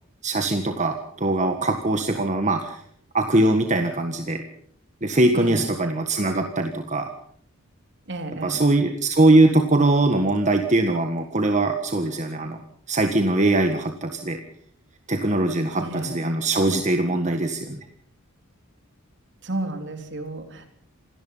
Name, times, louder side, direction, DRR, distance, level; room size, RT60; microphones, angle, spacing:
voice 1, 0.2-2.8 3.1-4.4 5.0-7.1 8.4-12.6 12.9-14.4 15.1-17.8, right 2 dB, 35° right, 5 dB, 1.7 m, -21 dB
voice 2, 5.3-5.7 8.1-8.6 15.8-16.2 19.4-20.7, right 2 dB, 55° right, 5 dB, 3.6 m, -32 dB
28.0 x 18.0 x 5.7 m, 0.67 s
head